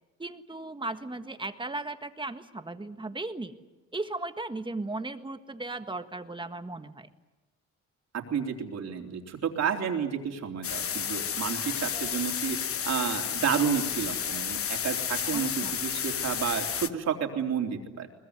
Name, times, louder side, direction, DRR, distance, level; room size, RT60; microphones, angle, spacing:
voice 1, 0.2-3.5 3.9-7.1 15.3-15.7, right 2 dB, 15° right, 8 dB, 1.6 m, -36 dB
voice 2, 8.1-18.1, right 7 dB, 60° right, 3 dB, 3.7 m, -31 dB
sound 1, 10.6-16.9, left 8 dB, 50° left, 1.1 m, -31 dB
23.0 x 20.0 x 9.7 m, 1.1 s
cardioid pair, 90°, 30 cm